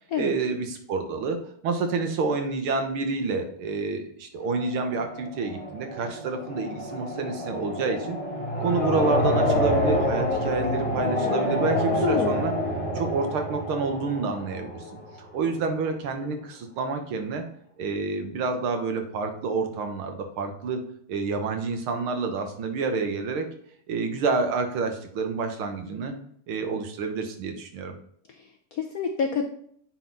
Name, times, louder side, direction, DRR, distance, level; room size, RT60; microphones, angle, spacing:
voice 1, 0.2-1.4 1.6-8.2 8.6-12.5 13.0-14.8 15.2-17.4 17.8-20.8 21.1-23.5 23.9-26.2 26.5-27.9, right 4 dB, 85° right, 5 dB, 2.0 m, -28 dB
sound 1, 4.4-15.3, left 1 dB, 15° left, 1.5 m, -28 dB
voice 2, 12.0-12.4 28.4-29.4, left 6 dB, 75° left, 4 dB, 0.8 m, -28 dB
9.0 x 4.1 x 4.0 m, 0.64 s
omnidirectional pair, 2.3 m